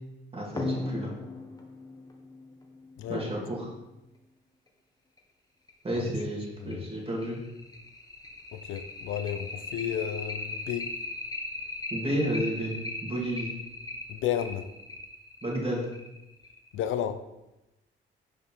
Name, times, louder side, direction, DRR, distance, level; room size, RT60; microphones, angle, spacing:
voice 1, 0.3-1.1 3.1-3.7 5.8-7.4 11.9-12.7 13.0-13.5 15.4-15.8, right 1 dB, 30° right, 2.5 m, -31 dB
sound 1, 0.6-3.7 5.2-5.3 5.7-5.8 6.2-6.3 6.7-16.8, left 2 dB, 20° left, 1.2 m, -38 dB
voice 2, 3.0-3.3 5.9-6.0 6.6-6.9 8.5-10.9 14.1-14.7 16.7-17.2, left 10 dB, 80° left, 0.6 m, -32 dB
5.1 x 5.0 x 5.6 m
cardioid pair, 90°, 20 cm